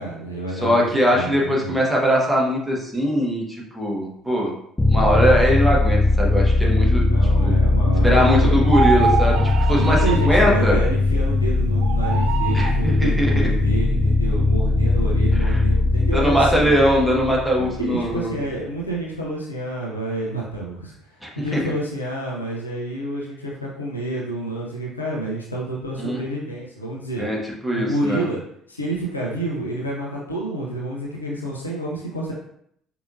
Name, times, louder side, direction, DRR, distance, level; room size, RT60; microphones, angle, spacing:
voice 1, 0.0-1.8 7.1-8.7 9.7-16.8 17.6-27.3 27.7-28.4 28.7-32.3, right 1 dB, 85° left, -4 dB, 0.6 m, -29 dB
voice 2, 0.6-4.5 4.9-7.0 7.4-7.5 8.0-9.4 9.7-10.8 12.5-13.5 15.5-15.6 16.1-18.4 21.2-21.6 26.0-26.2 27.2-27.4 27.6-28.2, equal, 5° right, -3 dB, 1.2 m, -21 dB
sound 1, 4.8-18.2, left 2 dB, 15° left, 0.5 m, -19 dB
sound 2, 8.6-10.5 11.8-12.8, right 5 dB, 50° right, 0.3 m, -25 dB
4.8 x 2.8 x 2.6 m, 0.70 s
figure-of-eight pair, 55°, 0 cm